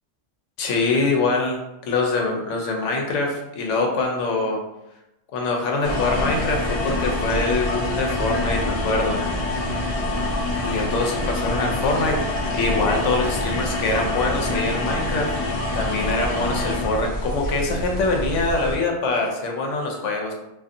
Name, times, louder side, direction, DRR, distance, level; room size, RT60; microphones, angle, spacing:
voice 1, 0.6-1.6 1.9-4.6 5.3-9.2 10.6-15.3 15.7-20.3, left 3 dB, 85° left, 1 dB, 0.9 m, -24 dB
sound 1, 5.8-18.8, left 1 dB, 60° left, 0.3 m, -26 dB
2.5 x 2.5 x 2.5 m, 0.92 s
omnidirectional pair, 1.2 m